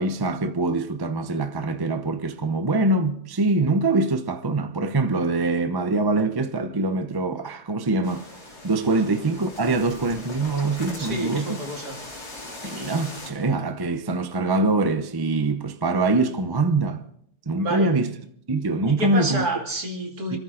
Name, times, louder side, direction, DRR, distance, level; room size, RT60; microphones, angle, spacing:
voice 1, 0.0-8.3 8.6-11.6 12.6-17.0 17.5-18.1 18.5-19.4 20.3-20.4, right 2 dB, 25° right, 0.5 m, -24 dB
sound 1, 8.0-13.3, left 2 dB, 65° left, 3.7 m, -40 dB
voice 2, 11.0-12.0 17.5-17.9 18.8-20.4, right 2 dB, 65° right, 2.9 m, -29 dB
26.0 x 14.0 x 3.8 m
omnidirectional pair, 1.8 m